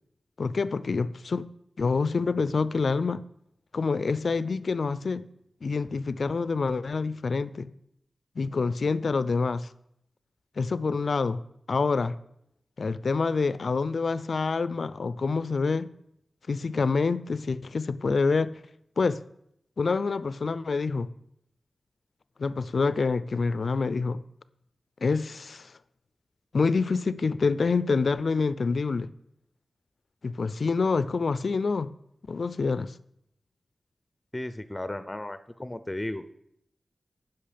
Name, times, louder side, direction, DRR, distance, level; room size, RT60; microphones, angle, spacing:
voice 1, 0.4-1.5 1.8-3.2 3.7-5.3 5.6-7.7 8.4-9.7 10.6-11.4 11.7-12.2 12.8-15.9 16.5-18.5 19.0-19.2 19.8-21.1 22.4-24.2 25.0-25.7 26.5-29.1 30.2-31.9 32.3-32.9, left 4 dB, 70° left, 0.4 m, -27 dB
voice 2, 34.3-36.2, left 1 dB, 20° left, 0.5 m, -35 dB
10.0 x 5.6 x 5.1 m
wide cardioid pair, 60°, 0 cm